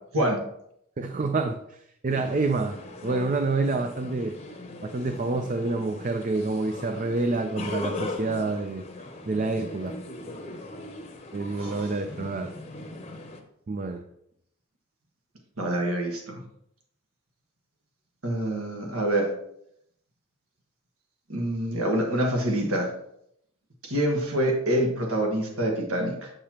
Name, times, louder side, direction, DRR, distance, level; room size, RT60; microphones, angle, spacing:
voice 1, 1.0-4.4 4.8-8.9 9.2-10.0 11.3-12.5 13.7-14.0, right 3 dB, 35° right, 7 dB, 0.4 m, -28 dB
sound 1, 2.1-13.4, left 2 dB, 30° left, 0.8 m, -39 dB
voice 2, 11.6-11.9 15.6-16.4 18.2-19.3 21.3-22.9 23.8-26.3, right 1 dB, 75° right, 1 dB, 1.4 m, -26 dB
7.6 x 6.7 x 2.9 m, 0.74 s
head